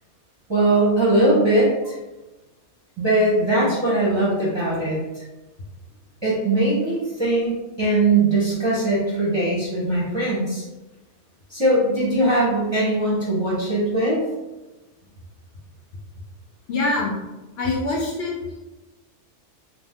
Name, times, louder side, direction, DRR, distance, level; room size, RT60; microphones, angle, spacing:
voice 1, 0.5-2.0 3.0-5.2 6.2-10.6 11.5-14.2, right 2 dB, 30° right, -8 dB, 0.6 m, -20 dB
voice 2, 16.7-17.2 17.6-18.6, left 2 dB, 65° left, -1 dB, 0.7 m, -24 dB
2.6 x 2.1 x 3.4 m, 1.1 s
omnidirectional pair, 1.3 m